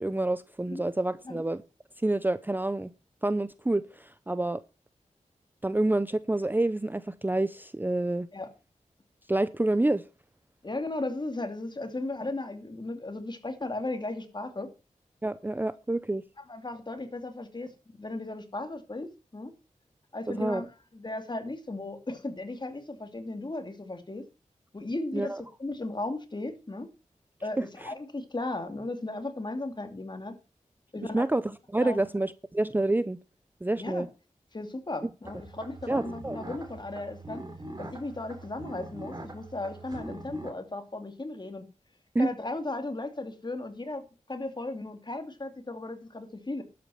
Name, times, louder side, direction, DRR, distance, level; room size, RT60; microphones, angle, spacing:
voice 1, 0.0-1.6 2.0-2.9 3.2-4.6 5.6-8.3 9.3-10.0 15.2-16.2 20.3-20.7 25.1-25.4 27.6-27.9 31.1-31.4 31.7-33.2 33.6-34.1 35.9-36.4 42.1-42.3, right 2 dB, 15° right, 0.5 m, -28 dB
voice 2, 10.6-14.7 16.5-17.7 18.0-19.5 20.1-20.7 20.9-24.2 24.7-25.3 25.6-26.9 27.4-30.3 30.9-31.3 31.8-32.0 33.8-34.0 34.5-37.4 37.8-41.7 42.2-46.6, left 2 dB, 35° left, 2.6 m, -36 dB
sound 1, 35.2-40.5, right 1 dB, 30° right, 3.9 m, -42 dB
12.0 x 8.5 x 5.7 m
wide cardioid pair, 90°, 13 cm